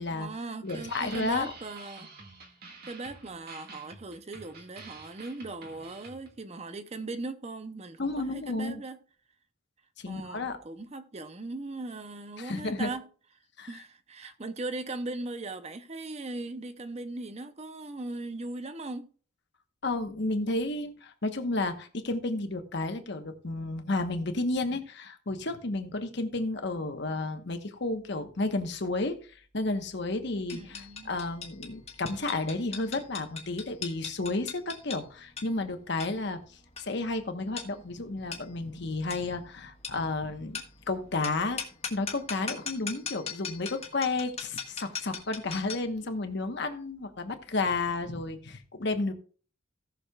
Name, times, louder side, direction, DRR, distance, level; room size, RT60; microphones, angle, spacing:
voice 1, 0.1-2.1 2.9-9.0 10.0-13.1 13.7-19.1 30.5-31.1, right 2 dB, 30° right, 0.6 m, -39 dB
voice 2, 0.6-1.5 8.0-8.8 10.0-10.6 12.4-12.9 13.6-13.7 19.8-29.1 29.5-30.6 31.1-36.4 36.8-41.6 41.9-49.1, left 2 dB, 60° left, 1.1 m, -32 dB
sound 1, 0.6-6.4, right 3 dB, 50° right, 1.8 m, -48 dB
sound 2, 30.5-46.0, left 6 dB, 30° left, 1.5 m, -41 dB
17.5 x 6.4 x 2.3 m
head